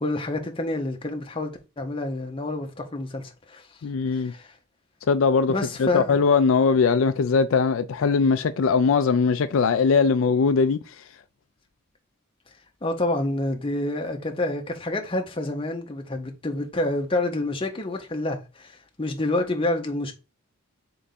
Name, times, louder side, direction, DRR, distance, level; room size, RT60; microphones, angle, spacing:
voice 1, 0.0-3.8 4.1-4.6 5.5-6.2 12.8-20.1, left 2 dB, 25° left, 0.7 m, -28 dB
voice 2, 3.8-4.3 5.1-5.5 5.8-10.8, left 5 dB, 70° left, 0.4 m, -20 dB
3.8 x 3.5 x 4.0 m
head